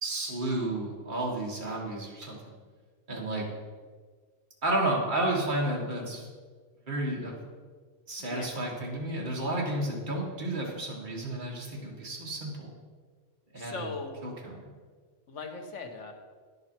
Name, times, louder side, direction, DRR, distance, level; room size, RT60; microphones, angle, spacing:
voice 1, 0.0-2.6 3.1-3.5 4.6-6.3 6.9-7.4 8.1-12.7 13.5-13.9 14.2-14.7, right 1 dB, 45° right, -2 dB, 1.8 m, -32 dB
voice 2, 8.2-8.5 13.6-14.2 15.3-16.1, left 4 dB, 80° left, 3 dB, 1.5 m, -39 dB
10.5 x 7.7 x 4.4 m, 1.5 s
omnidirectional pair, 1.2 m